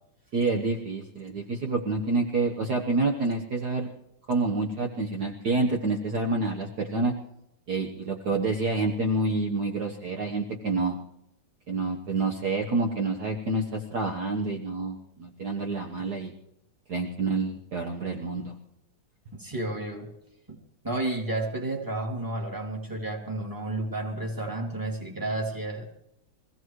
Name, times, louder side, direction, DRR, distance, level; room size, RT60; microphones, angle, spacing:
voice 1, 0.3-3.9 4.3-7.1 7.7-11.0 11.7-16.3 16.9-18.5, right 3 dB, 50° right, 2 dB, 1.6 m, -28 dB
voice 2, 19.3-20.1 20.5-20.6 20.8-25.9, right 2 dB, 10° right, 0 dB, 2.5 m, -31 dB
23.5 x 16.5 x 3.2 m, 0.80 s
omnidirectional pair, 2.4 m